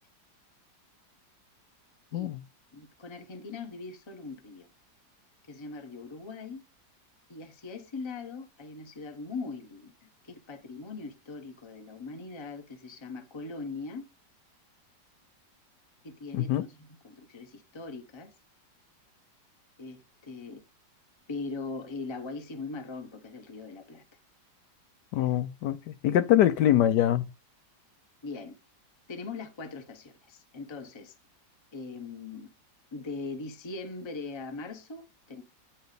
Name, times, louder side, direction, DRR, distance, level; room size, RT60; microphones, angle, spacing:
voice 1, 2.7-4.7 5.5-6.6 7.3-14.0 16.0-16.8 17.0-18.3 19.8-20.6 21.3-24.0 28.2-28.5 29.1-31.1 31.7-32.5 32.9-35.4, left 3 dB, 25° left, 0.6 m, -40 dB
voice 2, 16.3-16.7 25.1-27.3, left 12 dB, 75° left, 1.1 m, -24 dB
9.3 x 3.4 x 6.5 m
omnidirectional pair, 2.0 m